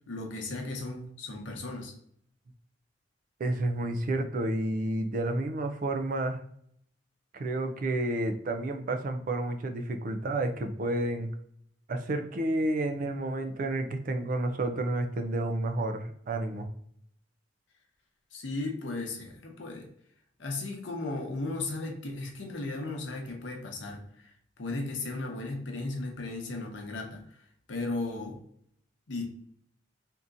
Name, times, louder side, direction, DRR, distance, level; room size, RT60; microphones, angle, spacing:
voice 1, 0.1-1.9 18.3-19.9 20.4-27.4 27.7-28.4 29.1-29.2, left 2 dB, 85° left, 1 dB, 0.8 m, -36 dB
voice 2, 3.4-6.4 7.3-11.3 11.9-16.7, right 2 dB, 50° right, 7 dB, 0.4 m, -30 dB
3.7 x 2.8 x 2.5 m, 0.68 s
head